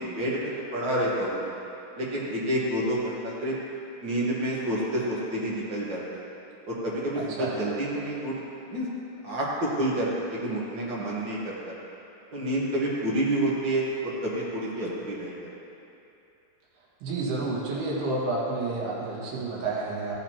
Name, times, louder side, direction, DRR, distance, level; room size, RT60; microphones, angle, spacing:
voice 1, 0.0-1.5 2.0-3.5 4.0-6.2 6.6-8.4 8.7-8.9 9.2-11.7 12.3-15.5, right 1 dB, 65° right, -6 dB, 1.1 m, -29 dB
voice 2, 7.2-7.5 17.0-20.2, right 3 dB, 85° right, -5 dB, 3.8 m, -30 dB
15.0 x 9.0 x 3.0 m, 2.8 s
omnidirectional pair, 4.4 m